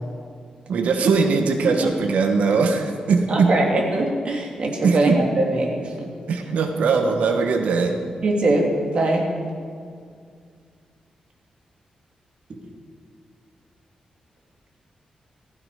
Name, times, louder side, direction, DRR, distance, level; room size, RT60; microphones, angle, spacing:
voice 1, 0.7-3.5 4.8-5.2 6.3-7.9, right 4 dB, 90° right, 5 dB, 1.4 m, -20 dB
voice 2, 3.3-5.9 8.2-8.7 8.9-9.2, right 2 dB, 50° right, 0 dB, 2.9 m, -22 dB
15.5 x 15.0 x 5.0 m, 2.2 s
wide cardioid pair, 110°, 2 cm